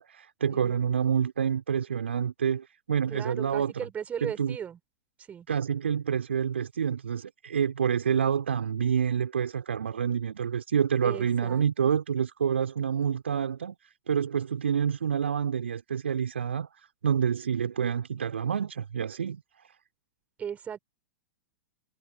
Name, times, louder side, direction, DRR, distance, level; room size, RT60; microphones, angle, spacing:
voice 1, 0.0-3.9 4.2-4.6 5.5-13.8 14.1-19.4, right 7 dB, 70° right, 3.9 m, -28 dB
voice 2, 3.1-4.8 5.3-5.5 11.0-11.6 20.4-20.8, right 8 dB, 20° right, 6.7 m, -37 dB
figure-of-eight pair, 95°, 7 cm